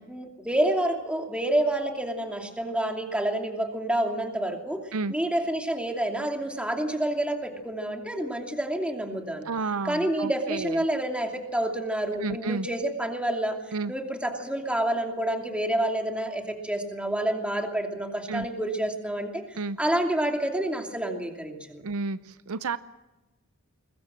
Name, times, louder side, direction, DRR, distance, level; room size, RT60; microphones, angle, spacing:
voice 1, 0.1-4.8 5.1-9.5 9.8-13.6 13.9-19.4 19.8-21.8, right 1 dB, 5° right, 2 dB, 2.7 m, -28 dB
voice 2, 9.4-10.8 12.2-12.7 13.7-13.9 18.3-18.5 19.5-19.8 21.8-22.8, right 4 dB, 70° right, 14 dB, 0.7 m, -31 dB
21.5 x 21.0 x 7.5 m, 1.1 s
head